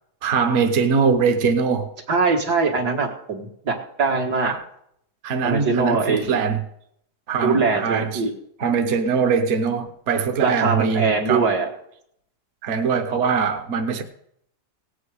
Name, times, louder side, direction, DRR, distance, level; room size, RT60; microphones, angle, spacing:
voice 1, 0.2-1.9 4.4-4.6 5.2-6.6 7.3-8.2 8.6-11.5 12.6-14.0, right 5 dB, 50° right, 1.2 m, -22 dB
voice 2, 2.1-4.5 5.4-6.4 7.4-8.3 10.4-11.7, right 4 dB, 75° right, 2.4 m, -22 dB
18.0 x 8.4 x 4.9 m
omnidirectional pair, 1.7 m